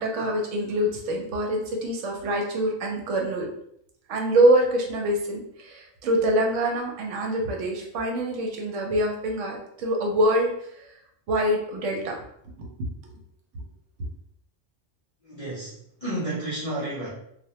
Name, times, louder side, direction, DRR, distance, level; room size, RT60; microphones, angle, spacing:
voice 1, 0.0-3.5 4.1-10.5 10.8-10.9 11.3-12.2 12.6-12.7 13.0-13.1, right 1 dB, 75° right, 1 dB, 0.9 m, -25 dB
voice 2, 15.2-17.1, right 1 dB, 45° left, -7 dB, 0.4 m, -31 dB
2.2 x 2.1 x 2.8 m, 0.72 s
omnidirectional pair, 1.3 m